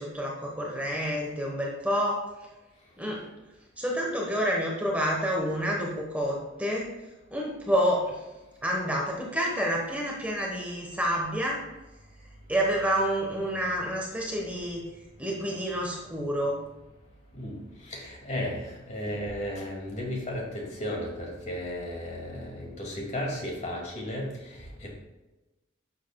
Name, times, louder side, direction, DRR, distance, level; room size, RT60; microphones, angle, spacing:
voice 1, 0.0-2.2 3.0-3.2 3.8-6.9 7.3-8.2 8.6-11.6 12.5-14.9 15.2-16.6, equal, 5° right, -2 dB, 1.2 m, -28 dB
voice 2, 17.3-24.9, left 1 dB, 35° left, -1 dB, 2.2 m, -34 dB
11.0 x 7.3 x 2.3 m, 1.1 s
head